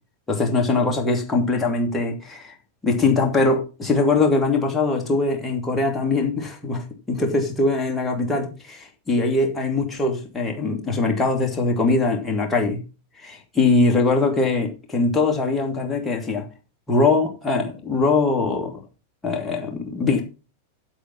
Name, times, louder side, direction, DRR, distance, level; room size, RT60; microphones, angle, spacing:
voice 1, 0.3-2.5 2.8-12.8 13.2-16.5 16.9-18.8 19.2-20.2, left 3 dB, 10° left, 2.7 m, -22 dB
8.3 x 7.9 x 5.5 m
figure-of-eight pair, 90°, 0 cm